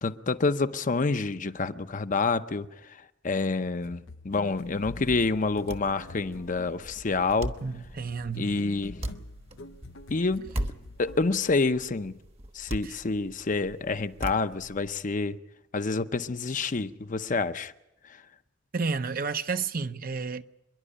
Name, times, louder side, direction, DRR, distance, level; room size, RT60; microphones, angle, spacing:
voice 1, 0.0-7.6 8.4-9.0 10.1-10.5 11.0-12.1 12.5-15.4 15.7-17.7 18.0-18.2, left 3 dB, 45° left, 0.7 m, -28 dB
sound 1, 3.8-11.4, left 2 dB, 85° left, 0.7 m, -45 dB
sound 2, 4.5-15.0, right 1 dB, 35° right, 1.1 m, -40 dB
voice 2, 7.6-8.6 12.8-12.9 18.7-20.4, right 4 dB, 50° right, 0.7 m, -31 dB
27.0 x 11.0 x 10.0 m
head